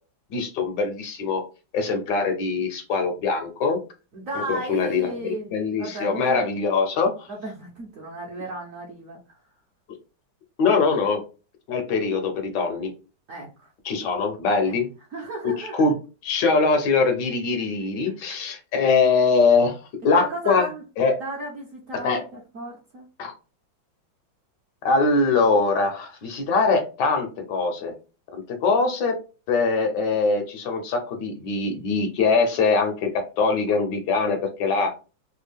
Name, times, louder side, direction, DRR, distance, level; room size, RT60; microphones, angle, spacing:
voice 1, 0.3-1.4 1.7-3.8 4.5-7.3 10.6-11.2 11.7-12.9 13.8-14.9 15.4-15.9 16.2-20.7 21.0-21.2 22.0-22.2 23.2-23.3 24.8-27.9 28.3-29.2 29.5-34.9, left 4 dB, 70° left, 5 dB, 1.2 m, -22 dB
voice 2, 4.1-5.5 5.8-6.5 7.3-9.4 13.3-13.7 14.7-14.8 15.1-15.8 20.1-20.8 21.2-23.1, right 2 dB, 55° right, -2 dB, 0.9 m, -35 dB
3.4 x 2.3 x 3.4 m, 0.32 s
omnidirectional pair, 2.1 m